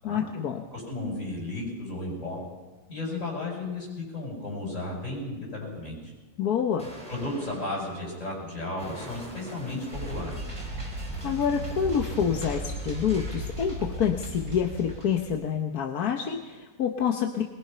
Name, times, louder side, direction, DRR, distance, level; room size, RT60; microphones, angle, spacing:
voice 1, 0.0-0.6 6.4-6.9 11.2-17.4, left 7 dB, 90° left, 3 dB, 1.6 m, -27 dB
voice 2, 0.7-2.4 2.9-6.0 7.1-10.5, left 2 dB, 55° left, -2 dB, 7.8 m, -34 dB
Explosion, 6.8-13.4, equal, 5° left, 4.6 m, -46 dB
sound 1, 9.9-15.4, right 1 dB, 75° right, 6.0 m, -36 dB
22.0 x 21.0 x 5.6 m, 1.2 s
omnidirectional pair, 1.6 m